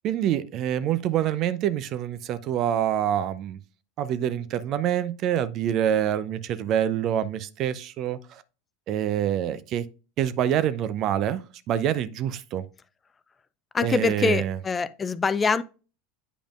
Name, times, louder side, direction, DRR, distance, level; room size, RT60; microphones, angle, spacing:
voice 1, 0.0-3.6 4.0-8.4 8.9-9.9 10.2-11.4 11.7-12.7 13.8-14.6, right 10 dB, 45° right, 0.5 m, -26 dB
voice 2, 13.7-15.6, left 4 dB, 20° left, 0.4 m, -24 dB
8.9 x 5.0 x 2.5 m
figure-of-eight pair, 80°, 0 cm